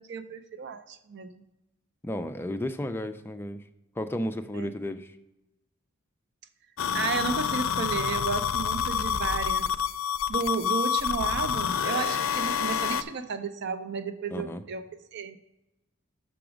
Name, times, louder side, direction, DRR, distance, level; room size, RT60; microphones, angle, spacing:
voice 1, 0.0-1.4 4.5-4.8 6.9-9.7 10.3-14.8 15.1-15.4, right 5 dB, 55° right, 10 dB, 0.5 m, -33 dB
voice 2, 2.0-3.6 4.0-5.1 14.3-14.6, left 1 dB, 10° left, 9 dB, 0.3 m, -33 dB
sound 1, 6.8-13.0, left 7 dB, 80° left, 0.4 m, -28 dB
6.0 x 5.9 x 5.0 m, 0.95 s
head